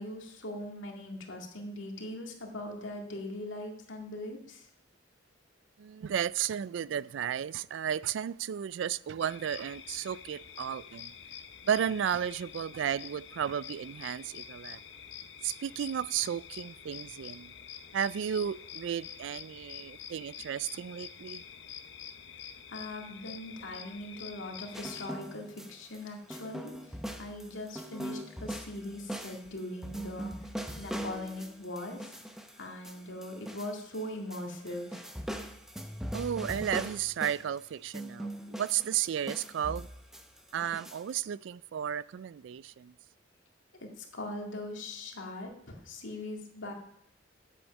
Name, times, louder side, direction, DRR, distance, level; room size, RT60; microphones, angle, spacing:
voice 1, 0.0-4.7 22.7-30.5 30.8-32.2 32.5-35.0 43.8-46.7, left 1 dB, 80° left, 2.1 m, -41 dB
voice 2, 5.8-11.1 11.6-14.8 15.4-17.5 17.9-21.4 36.1-39.9 40.5-42.9, right 9 dB, 70° right, 0.3 m, -33 dB
sound 1, 9.2-25.1, left 8 dB, 65° left, 0.8 m, -47 dB
sound 2, 24.7-26.0 26.3-34.0 34.3-37.6 37.9-41.1, equal, ahead, 0.7 m, -41 dB
10.0 x 8.4 x 5.3 m
head